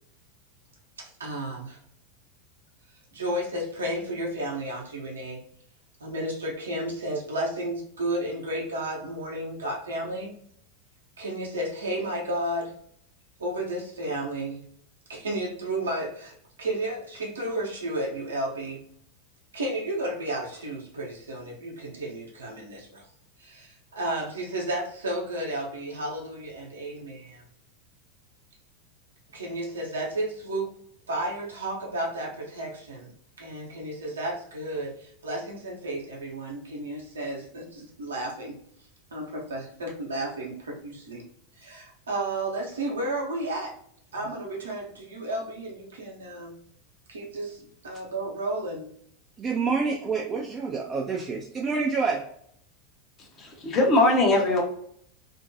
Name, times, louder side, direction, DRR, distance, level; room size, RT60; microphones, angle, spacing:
voice 1, 1.0-1.8 3.1-5.5 6.0-10.3 11.2-12.8 13.4-14.6 15.1-18.8 19.5-23.1 23.4-27.4 29.3-30.7 31.1-33.1 33.4-38.6 39.1-41.3 41.6-43.8 44.1-46.6 47.1-48.9, right 1 dB, 75° right, -1 dB, 0.7 m, -32 dB
voice 2, 49.4-52.2, right 4 dB, 25° right, -1 dB, 0.4 m, -27 dB
voice 3, 53.2-54.6, left 2 dB, 30° left, 0 dB, 0.8 m, -21 dB
2.6 x 2.2 x 2.6 m, 0.66 s
figure-of-eight pair, 85°, 0 cm